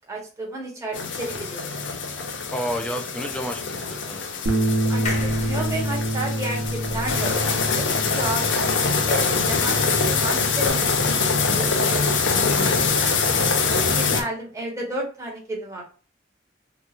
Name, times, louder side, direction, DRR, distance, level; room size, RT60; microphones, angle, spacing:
voice 1, 0.1-1.8 4.9-8.5 9.0-12.1 12.5-13.7 13.9-15.8, right 1 dB, 15° right, -2 dB, 0.9 m, -33 dB
sound 1, 0.9-14.2, left 4 dB, 70° left, 0.6 m, -24 dB
voice 2, 2.5-3.6 3.9-4.2, equal, 5° left, 3 dB, 0.5 m, -30 dB
Bass guitar, 4.5-10.7, right 1 dB, 85° right, 0.9 m, -27 dB
sound 2, 5.1-8.5 8.9-9.0 9.2-9.3, left 2 dB, 40° left, 0.8 m, -36 dB
3.6 x 3.0 x 2.4 m, 0.38 s
head